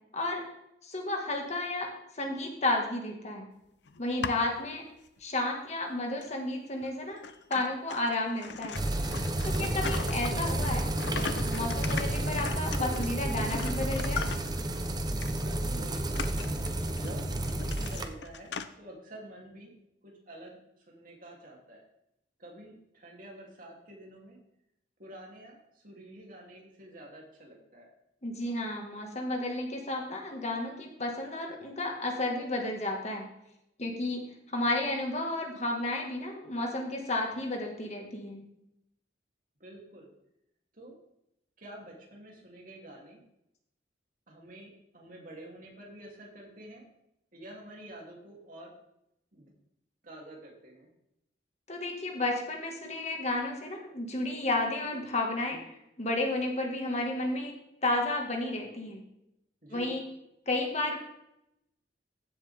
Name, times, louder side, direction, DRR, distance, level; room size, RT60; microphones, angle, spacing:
voice 1, 0.1-0.4 0.8-1.9 2.1-3.5 4.0-4.8 5.2-7.2 7.5-8.8 9.4-14.3 28.2-33.3 33.8-38.4 51.7-57.5 57.8-59.0 59.7-60.0 60.5-61.0, left 2 dB, 40° left, 2 dB, 1.9 m, -32 dB
sound 1, 3.9-4.6 5.2-5.3 6.2-6.3 6.8-6.9 7.2-14.8 15.2-15.4 15.7-18.7, left 5 dB, 70° left, 0.7 m, -40 dB
sound 2, 8.7-18.1, right 1 dB, 25° right, 0.9 m, -31 dB
voice 2, 9.4-9.8 15.3-16.3 16.9-19.7 20.0-21.8 22.4-24.4 25.0-27.9 39.6-40.1 40.7-41.0 41.6-43.2 44.3-46.8 47.3-48.7 49.3-49.5 50.0-50.9 59.6-60.0, right 1 dB, 50° right, -2 dB, 3.2 m, -48 dB
15.0 x 7.7 x 3.6 m, 0.82 s
head